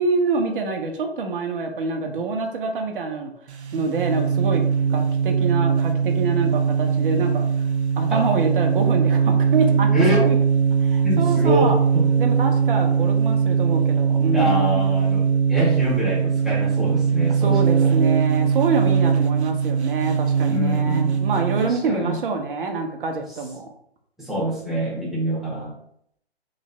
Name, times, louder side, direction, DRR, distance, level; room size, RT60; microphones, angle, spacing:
voice 1, 0.0-3.3 3.7-4.6 4.9-7.5 8.0-10.4 10.8-11.8 12.2-14.8 17.4-23.7, right 4 dB, 55° right, 4 dB, 0.9 m, -26 dB
sound 1, 3.5-21.7, right 6 dB, 90° right, 0.6 m, -20 dB
voice 2, 9.9-10.2 11.0-12.1 14.3-17.9 20.5-21.2 21.6-22.2 24.2-25.7, equal, ahead, -7 dB, 1.3 m, -25 dB
3.3 x 3.1 x 4.0 m, 0.71 s
hypercardioid pair, 140°, 32 cm